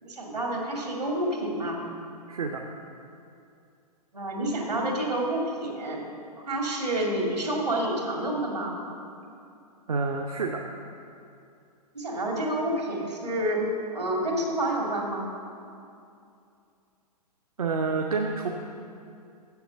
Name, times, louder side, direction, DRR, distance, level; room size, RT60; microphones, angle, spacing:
voice 1, 0.0-1.9 4.1-6.0 6.4-8.8 11.9-13.6 13.9-15.3, right 1 dB, 80° right, -1 dB, 2.3 m, -29 dB
voice 2, 2.3-2.6 9.9-10.6 17.6-18.5, right 4 dB, 60° right, 1 dB, 0.7 m, -28 dB
7.7 x 7.0 x 6.9 m, 2.5 s
figure-of-eight pair, 115°, 20 cm